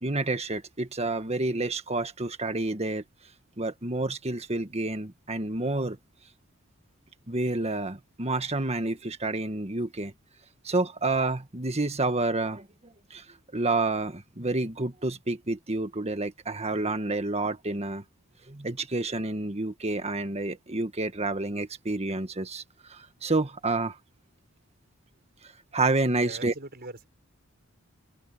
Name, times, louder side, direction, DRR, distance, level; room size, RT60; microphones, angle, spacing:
voice 1, 0.0-3.0 3.6-6.0 7.3-10.1 10.6-12.7 13.1-13.2 13.5-18.0 18.5-22.6 22.9-23.9 25.7-26.5, right 2 dB, 30° right, 1.6 m, -29 dB
voice 2, 26.1-27.1, right 2 dB, 45° right, 6.9 m, -41 dB
open air
head